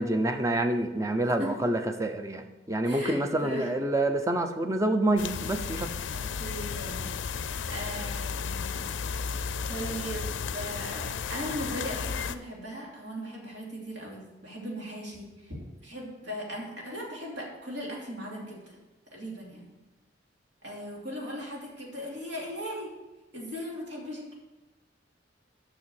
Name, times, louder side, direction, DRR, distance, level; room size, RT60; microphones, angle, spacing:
voice 1, 0.0-5.9, right 1 dB, 15° right, 7 dB, 0.7 m, -27 dB
voice 2, 2.8-3.7 6.1-7.1 7.7-8.9 9.7-18.8 19.1-19.6 20.6-22.9 23.3-24.3, equal, 70° right, -3 dB, 2.9 m, -38 dB
sound 1, 5.2-12.4, left 6 dB, 85° left, 0.5 m, -34 dB
6.9 x 6.3 x 7.7 m, 1.1 s
head